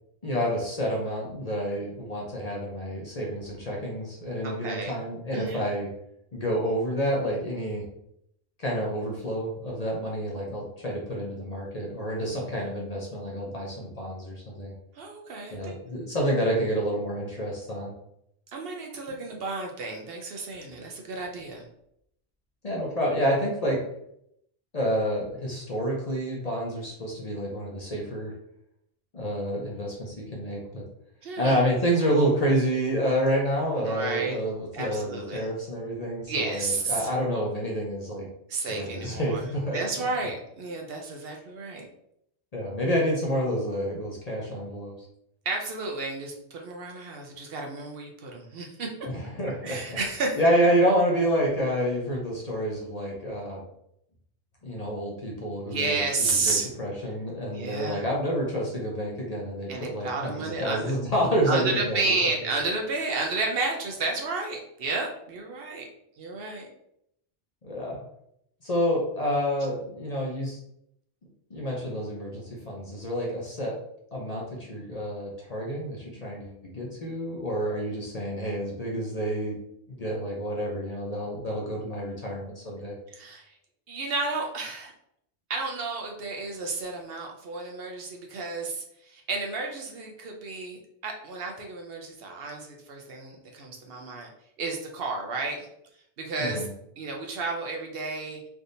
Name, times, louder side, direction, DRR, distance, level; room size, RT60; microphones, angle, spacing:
voice 1, 0.2-5.9 6.3-7.8 8.6-14.7 15.5-17.9 22.6-23.8 24.7-28.3 29.1-30.8 31.4-38.3 38.7-39.8 42.5-44.9 49.0-50.0 50.4-53.6 54.6-62.1 67.6-68.0 68.6-70.6 71.5-73.8 74.1-79.6 79.9-82.9 96.4-96.7, equal, 40° left, -3 dB, 0.6 m, -28 dB
voice 2, 4.4-5.0 5.3-5.7 14.9-15.7 18.5-21.7 31.2-31.6 33.9-34.4 34.7-35.5 36.3-37.1 38.5-39.4 39.7-41.9 45.5-49.1 49.6-50.4 55.7-56.7 57.5-58.0 59.7-60.9 61.5-65.9 66.2-66.7 83.1-83.5 83.9-84.9 85.5-94.3 94.6-95.7 96.2-96.7 97.0-98.4, right 3 dB, 65° right, 1 dB, 0.7 m, -32 dB
3.4 x 2.7 x 2.6 m, 0.75 s
omnidirectional pair, 1.2 m